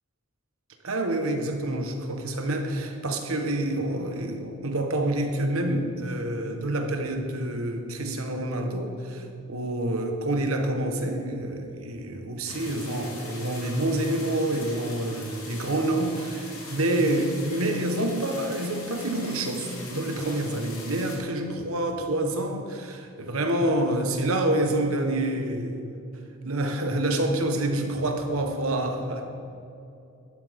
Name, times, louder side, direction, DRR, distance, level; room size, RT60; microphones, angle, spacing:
voice 1, 0.8-25.9 26.4-29.2, right 1 dB, 85° right, 4 dB, 1.3 m, -27 dB
sound 1, 12.5-21.2, left 2 dB, 85° left, 2.5 m, -41 dB
12.0 x 11.0 x 3.7 m, 2.7 s
head